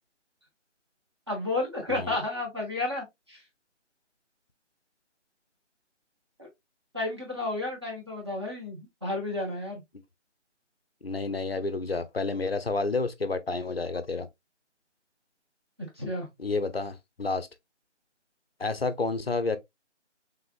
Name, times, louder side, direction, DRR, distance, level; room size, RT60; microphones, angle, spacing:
voice 1, 1.3-3.4 6.4-6.5 6.9-9.8 16.0-16.3, left 2 dB, 20° right, 0.9 m, -32 dB
voice 2, 11.0-14.3 16.4-17.5 18.6-19.6, left 3 dB, 55° left, 0.5 m, -30 dB
3.4 x 3.2 x 2.3 m
figure-of-eight pair, 160°, 36 cm